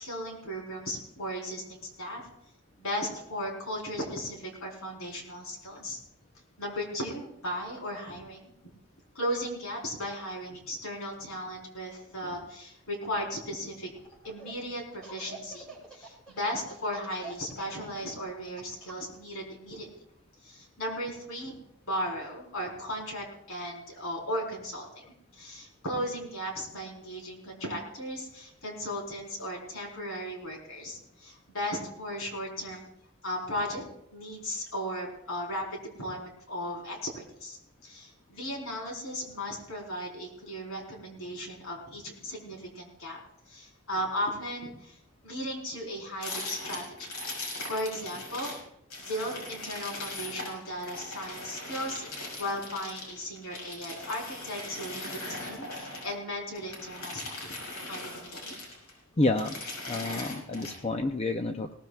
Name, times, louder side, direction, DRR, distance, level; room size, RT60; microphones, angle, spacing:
voice 1, 0.0-2.2 2.8-6.0 6.6-8.5 9.1-13.9 14.2-19.9 20.4-21.6 21.9-32.9 33.2-33.8 34.1-35.6 36.0-43.2 43.5-45.0 45.2-47.2 47.7-48.5 49.0-57.5 57.8-58.6, equal, 70° left, -1 dB, 4.4 m, -36 dB
Laughter, 13.9-14.5 14.9-19.2, right 4 dB, 5° left, 5.0 m, -47 dB
sound 1, 46.2-48.6 48.9-56.2 56.6-58.9 59.2-60.8, left 2 dB, 90° left, 5.6 m, -40 dB
voice 2, 59.2-59.6 59.9-61.7, left 2 dB, 30° left, 5 dB, 0.6 m, -29 dB
20.0 x 18.0 x 2.4 m, 0.75 s
head